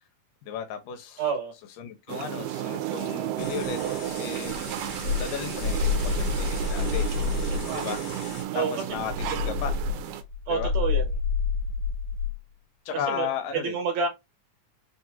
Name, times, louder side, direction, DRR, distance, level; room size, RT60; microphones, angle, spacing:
voice 1, 0.4-1.2 1.8-3.8 4.2-4.6 5.2-7.1 7.7-8.0 8.5-9.8 10.5-10.7 12.9-13.8, left 8 dB, 80° left, 2.5 m, -34 dB
voice 2, 1.2-1.5 8.5-8.7 10.5-11.1 13.1-14.1, right 6 dB, 65° right, 2.3 m, -28 dB
sound 1, 2.1-10.2, right 12 dB, 85° right, 2.2 m, -33 dB
sound 2, 3.4-8.4, left 4 dB, 60° left, 2.3 m, -41 dB
sound 3, 4.5-7.7 8.9-12.4, left 4 dB, 40° left, 1.8 m, -28 dB
5.4 x 2.8 x 2.3 m
omnidirectional pair, 3.7 m